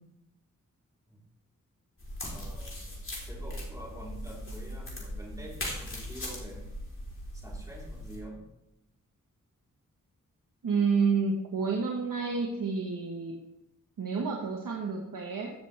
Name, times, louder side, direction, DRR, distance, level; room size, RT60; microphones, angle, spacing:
sound 1, 2.0-8.2, left 1 dB, 40° left, 3.8 m, -39 dB
voice 1, 2.2-6.6 7.3-8.4, right 1 dB, 10° right, -4 dB, 3.7 m, -46 dB
voice 2, 10.6-13.3 14.0-15.5, right 5 dB, 85° right, 0 dB, 1.3 m, -29 dB
15.5 x 7.1 x 3.3 m, 0.86 s
wide cardioid pair, 75°, 32 cm